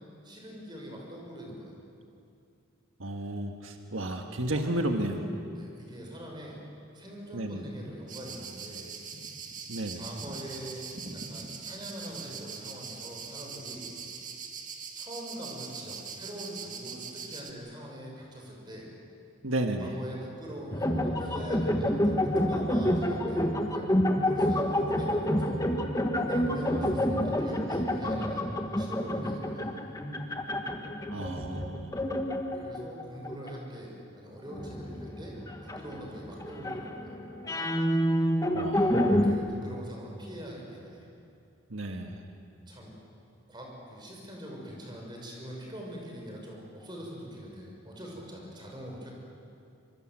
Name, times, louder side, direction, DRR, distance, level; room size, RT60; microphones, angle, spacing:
voice 1, 0.2-1.8 5.5-6.6 6.9-8.9 9.9-13.9 15.0-18.9 19.8-23.9 24.2-25.6 26.2-28.5 28.8-29.8 32.5-35.4 35.7-37.2 39.2-41.1 42.7-43.0 43.5-49.1, equal, 25° right, -1 dB, 6.1 m, -43 dB
voice 2, 3.0-5.3 7.3-7.6 9.7-10.0 19.4-19.9 31.1-32.0 38.5-39.2 41.7-42.2, right 1 dB, 85° right, 3 dB, 1.6 m, -32 dB
sound 1, 8.1-17.5, right 5 dB, 40° right, 2.0 m, -42 dB
sound 2, 20.7-33.6 34.5-39.3, equal, 15° left, 1.4 m, -28 dB
25.0 x 23.5 x 7.8 m, 2.5 s
head